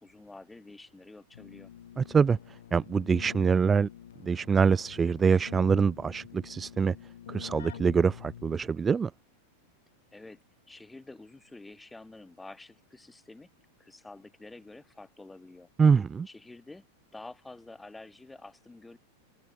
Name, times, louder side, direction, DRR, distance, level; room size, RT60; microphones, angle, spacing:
voice 1, 0.0-1.7 10.1-13.5 13.8-15.7 16.3-16.9 17.1-19.0, left 2 dB, 5° left, 4.2 m, -49 dB
Keyboard (musical), 1.3-8.9, left 10 dB, 65° left, 3.0 m, -47 dB
voice 2, 2.0-2.4 2.7-3.9 4.2-7.0 7.3-9.1 15.8-16.3, right 6 dB, 15° right, 0.4 m, -24 dB
figure-of-eight pair, 90°, 0 cm